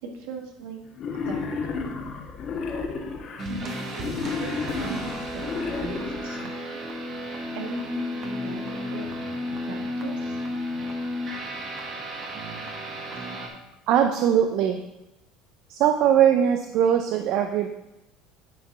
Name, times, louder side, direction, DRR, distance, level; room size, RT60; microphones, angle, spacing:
voice 1, 0.0-0.8 1.1-1.6 3.4-4.1 4.4-6.9 7.5-9.1 9.6-10.3, right 3 dB, 80° right, 2 dB, 1.3 m, -39 dB
Wild animals, 1.0-3.4 4.0-6.4, left 4 dB, 45° left, 1.2 m, -32 dB
sound 1, 3.4-13.5, left 1 dB, 45° right, 1.4 m, -33 dB
voice 2, 13.9-14.8 15.7-17.7, right 9 dB, 65° right, 6 dB, 0.5 m, -21 dB
9.7 x 4.6 x 3.7 m, 0.93 s
supercardioid pair, 95°, 0 cm